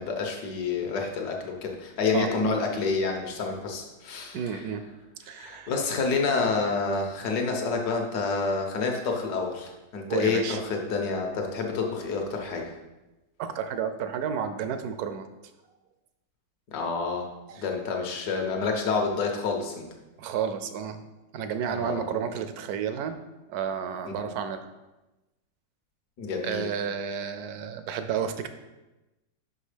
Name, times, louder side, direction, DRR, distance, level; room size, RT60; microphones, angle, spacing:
voice 1, 0.0-4.7 5.2-12.7 16.7-17.3 17.6-19.9 21.7-22.0 24.2-24.4 26.2-26.7, left 4 dB, 65° left, 1 dB, 1.5 m, -28 dB
voice 2, 2.1-2.5 4.3-4.8 5.3-5.7 10.1-10.6 13.4-15.3 17.5-17.6 20.2-21.0 21.3-23.2 23.5-24.7 26.4-28.5, right 7 dB, 70° right, 9 dB, 1.0 m, -31 dB
5.8 x 5.3 x 5.0 m, 1.0 s
omnidirectional pair, 1.9 m